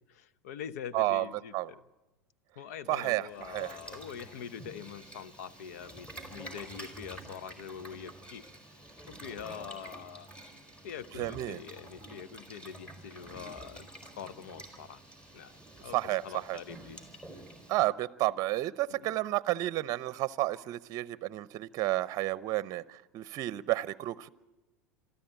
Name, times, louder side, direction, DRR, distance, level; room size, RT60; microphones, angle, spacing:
voice 1, 0.1-1.8 2.6-8.4 9.1-10.3 10.8-15.0 15.3-15.5 15.8-17.0 18.9-19.2, left 8 dB, 70° left, 17 dB, 0.9 m, -44 dB
voice 2, 0.9-1.3 1.5-1.7 2.9-3.8 11.2-11.6 15.9-16.6 17.7-24.3, right 17 dB, 45° right, 18 dB, 0.7 m, -31 dB
Boiling, 3.3-17.9, right 1 dB, 15° left, 4.4 m, -49 dB
27.0 x 13.0 x 8.9 m, 1.0 s
hypercardioid pair, 85°, 9 cm